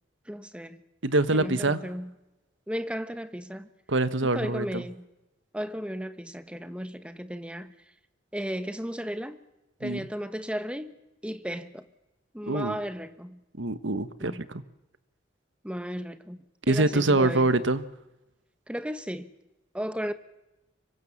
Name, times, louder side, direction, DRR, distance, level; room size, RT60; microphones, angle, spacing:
voice 1, 0.3-0.8 1.3-2.1 2.7-3.7 4.2-5.1 5.5-7.7 8.3-9.4 9.8-11.8 12.3-13.4 14.2-14.4 15.6-17.5 18.7-19.3 19.7-20.1, equal, 5° right, 1.3 m, -35 dB
voice 2, 1.0-1.8 3.9-4.8 9.8-10.1 12.5-12.8 13.5-14.6 16.7-17.8, right 2 dB, 80° right, 1.4 m, -25 dB
25.5 x 23.0 x 7.3 m
head